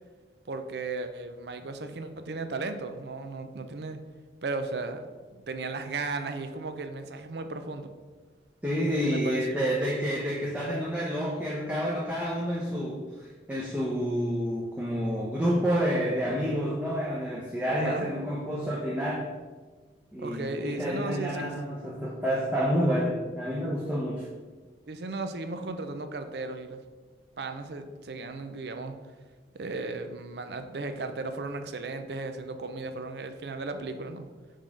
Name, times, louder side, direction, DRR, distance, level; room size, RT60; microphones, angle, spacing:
voice 1, 0.5-4.0 4.4-5.1 5.5-7.9 9.1-9.6 17.7-18.1 20.2-21.5 24.9-26.8 27.4-29.0 29.5-34.3, right 3 dB, 65° right, 8 dB, 0.5 m, -35 dB
voice 2, 8.6-19.3 20.1-24.3, equal, 10° right, -5 dB, 0.7 m, -29 dB
5.3 x 3.5 x 5.1 m, 1.4 s
head